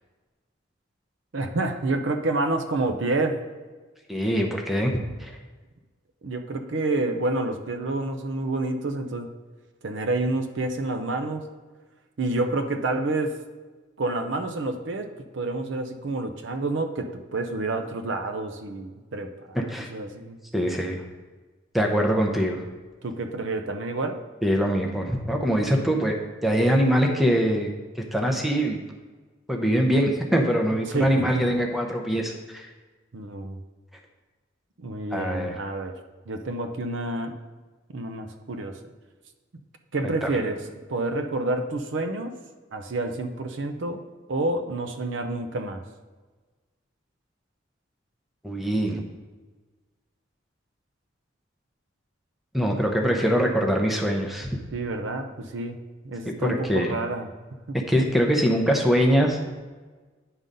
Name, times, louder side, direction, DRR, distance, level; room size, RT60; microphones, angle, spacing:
voice 1, 1.3-3.4 6.2-9.3 9.8-11.5 12.2-13.3 14.0-15.1 15.3-20.4 23.0-24.2 30.9-31.1 33.1-33.6 34.8-35.9 36.3-37.4 37.9-38.8 39.9-40.6 40.9-42.3 42.7-44.0 44.3-45.8 54.7-55.8 56.0-57.3 57.7-57.8, right 2 dB, 70° right, 7 dB, 0.6 m, -28 dB
voice 2, 4.1-4.9 5.2-5.4 19.5-19.9 20.5-21.0 21.7-22.6 24.4-26.1 26.4-27.7 28.1-28.8 29.5-32.7 35.1-35.5 40.0-40.3 48.4-49.0 52.5-54.6 56.4-56.9 57.9-59.4, equal, ahead, 1 dB, 0.6 m, -23 dB
9.7 x 3.9 x 5.2 m, 1.3 s
head